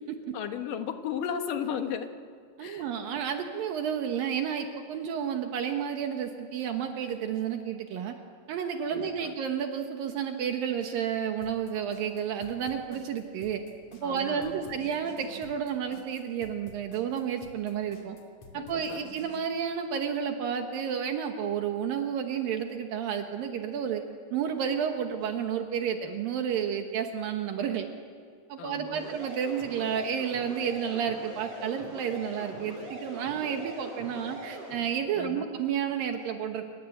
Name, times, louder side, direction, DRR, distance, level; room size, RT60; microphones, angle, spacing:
voice 1, 0.3-2.1 2.6-3.2 8.9-9.3 14.0-14.8 18.5-19.1 28.6-29.2 35.1-35.5, left 8 dB, 65° left, 6 dB, 2.8 m, -36 dB
voice 2, 2.6-8.1 8.5-13.6 14.0-18.2 18.5-24.0 24.3-27.9 28.5-36.6, right 8 dB, 70° right, 5 dB, 2.9 m, -31 dB
sound 1, 11.4-19.4, left 1 dB, 50° left, 4.0 m, -50 dB
sound 2, 28.9-34.8, right 1 dB, 40° right, 7.1 m, -42 dB
28.0 x 26.0 x 7.9 m, 2.1 s
omnidirectional pair, 4.3 m